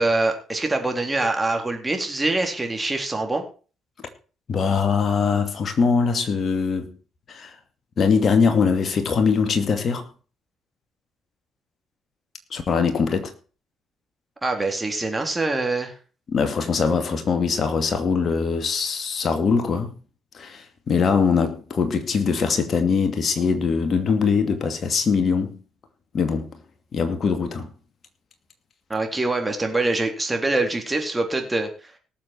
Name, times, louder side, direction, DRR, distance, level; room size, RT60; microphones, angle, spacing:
voice 1, 0.0-3.4 14.4-15.9 28.9-31.7, right 2 dB, 20° right, 3.8 m, -24 dB
voice 2, 4.5-6.9 7.3-7.5 8.0-10.0 12.5-13.3 16.3-19.9 20.3-25.6 26.1-26.5 26.9-27.7, left 5 dB, 50° left, 2.5 m, -22 dB
18.5 x 7.4 x 4.5 m
hypercardioid pair, 45°, 0 cm